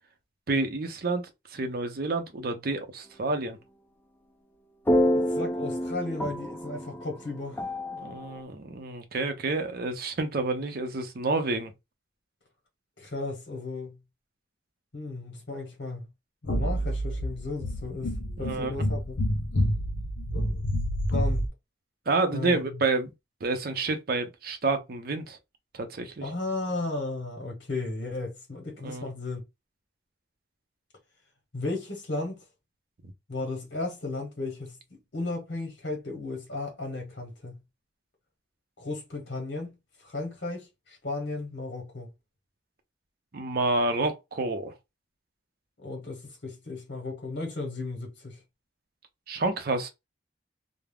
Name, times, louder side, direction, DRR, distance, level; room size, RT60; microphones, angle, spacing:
voice 1, 0.5-1.2 1.5-3.6 8.0-11.7 18.4-18.7 22.1-23.1 23.4-25.4 25.7-26.2 28.8-29.1 43.3-44.7 49.3-49.9, right 3 dB, 50° right, 0.6 m, -29 dB
sound 1, 4.9-8.4, equal, 10° left, 0.3 m, -28 dB
voice 2, 5.1-7.7 13.0-13.9 14.9-16.1 16.4-19.0 21.1-21.5 22.3-22.8 26.2-29.4 31.5-32.4 33.3-37.6 38.8-39.7 40.0-42.1 45.8-48.4, left 2 dB, 60° left, 0.9 m, -35 dB
sound 2, 16.5-21.5, equal, 85° left, 0.6 m, -28 dB
2.3 x 2.0 x 3.3 m
head